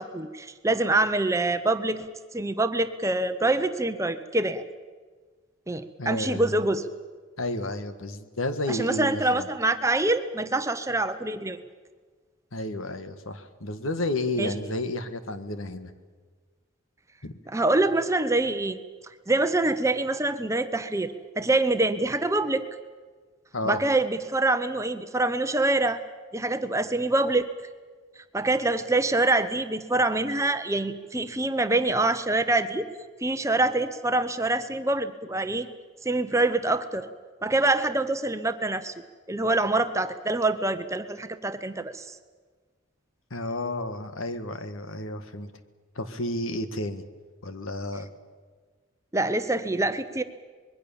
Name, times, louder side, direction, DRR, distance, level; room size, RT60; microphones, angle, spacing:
voice 1, 0.0-2.0 2.3-4.6 5.7-6.8 8.7-11.6 14.4-14.5 17.5-18.8 19.3-22.7 23.6-26.0 26.3-27.5 28.3-32.9 33.2-35.7 36.0-37.1 37.4-38.9 39.3-42.1 49.1-50.2, right 2 dB, 15° right, 9 dB, 0.9 m, -25 dB
voice 2, 6.0-6.7 7.4-9.5 12.5-15.9 17.2-17.3 23.5-23.8 43.3-45.5 45.9-47.0 47.4-48.1, left 1 dB, 80° left, 10 dB, 1.6 m, -31 dB
25.0 x 21.5 x 7.1 m, 1.5 s
head